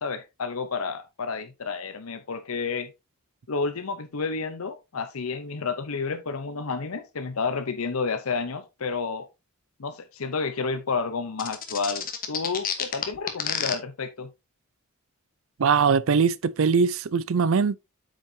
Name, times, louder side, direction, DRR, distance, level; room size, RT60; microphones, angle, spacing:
voice 1, 0.0-2.9 3.5-9.3 9.8-14.3, left 4 dB, 75° left, 0.8 m, -30 dB
sound 1, 11.4-13.7, left 8 dB, 40° left, 1.3 m, -29 dB
voice 2, 15.6-17.8, right 5 dB, 65° right, 0.5 m, -21 dB
8.3 x 6.4 x 2.8 m
head